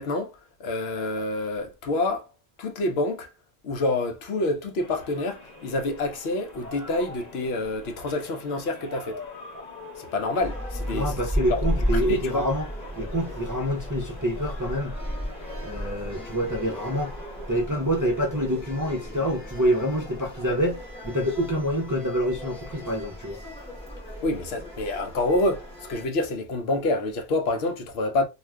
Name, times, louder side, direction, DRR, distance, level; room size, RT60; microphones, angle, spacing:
voice 1, 0.0-2.3 2.6-3.3 3.6-9.2 10.0-11.1 11.5-12.5 24.2-28.2, left 2 dB, 80° left, 0.9 m, -27 dB
sound 1, 4.8-17.6, left 3 dB, 40° left, 1.0 m, -44 dB
sound 2, 10.4-26.0, equal, 5° left, 0.8 m, -34 dB
voice 2, 10.9-12.7 13.0-14.9 15.6-17.1 17.5-23.4, equal, 30° right, 0.3 m, -27 dB
2.4 x 2.3 x 3.3 m
omnidirectional pair, 1.1 m